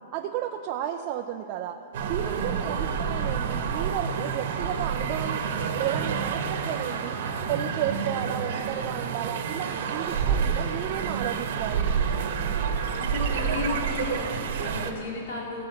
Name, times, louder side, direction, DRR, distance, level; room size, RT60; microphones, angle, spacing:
voice 1, 0.1-1.8 2.0-5.4 5.8-7.2 7.5-11.9, right 10 dB, 30° right, 3 dB, 0.5 m, -33 dB
sound 1, 1.9-14.9, right 6 dB, 55° right, 1.1 m, -28 dB
voice 2, 2.2-2.8 12.8-15.6, left 3 dB, 55° left, -3 dB, 2.5 m, -34 dB
17.0 x 5.7 x 7.7 m, 2.6 s
hypercardioid pair, 165°, 0 cm